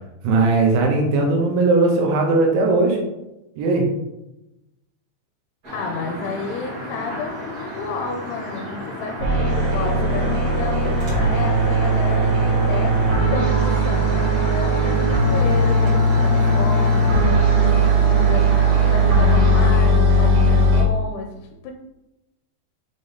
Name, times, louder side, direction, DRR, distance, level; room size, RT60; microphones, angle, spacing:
voice 1, 0.2-3.0 3.6-3.9, right 3 dB, 80° right, 1 dB, 3.2 m, -18 dB
sound 1, 5.6-19.7, equal, 40° right, 1.3 m, -33 dB
voice 2, 5.7-21.7, left 4 dB, 85° left, 2 dB, 3.0 m, -31 dB
sound 2, 9.2-20.8, right 1 dB, 60° right, 2.6 m, -18 dB
7.5 x 3.7 x 3.9 m, 0.92 s
omnidirectional pair, 5.4 m